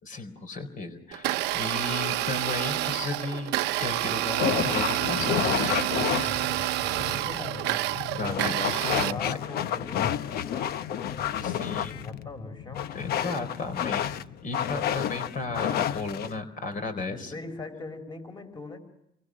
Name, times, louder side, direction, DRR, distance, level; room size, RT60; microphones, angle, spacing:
voice 1, 0.0-5.8 8.1-9.4 11.4-12.0 12.9-17.3, left 3 dB, 50° left, 8 dB, 4.4 m, -34 dB
Domestic sounds home sounds, 1.1-9.1, right 16 dB, 90° right, 0.9 m, -28 dB
sound 1, 4.4-16.4, left 9 dB, 65° left, 1.0 m, -30 dB
voice 2, 6.2-7.9 8.2-13.4 17.1-18.8, left 2 dB, 25° left, 8 dB, 4.4 m, -42 dB
29.0 x 24.0 x 6.4 m, 0.84 s
cardioid pair, 110°, 17 cm